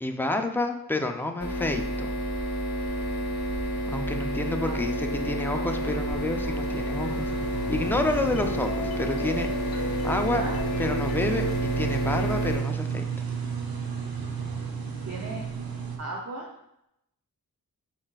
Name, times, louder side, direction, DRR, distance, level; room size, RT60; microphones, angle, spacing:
voice 1, 0.0-2.1 3.9-7.3 7.7-10.4 10.8-13.0, left 2 dB, 5° left, 4 dB, 0.4 m, -29 dB
sound 1, 1.4-12.6, equal, 50° left, 1.0 m, -30 dB
sound 2, 3.2-16.0, right 6 dB, 75° right, 0.7 m, -34 dB
sound 3, 5.5-11.5, left 2 dB, 65° left, 0.7 m, -38 dB
voice 2, 10.1-10.6 15.0-15.4 16.0-16.5, right 3 dB, 45° right, -2 dB, 0.7 m, -36 dB
5.0 x 3.9 x 2.3 m, 0.81 s
wide cardioid pair, 65°, 36 cm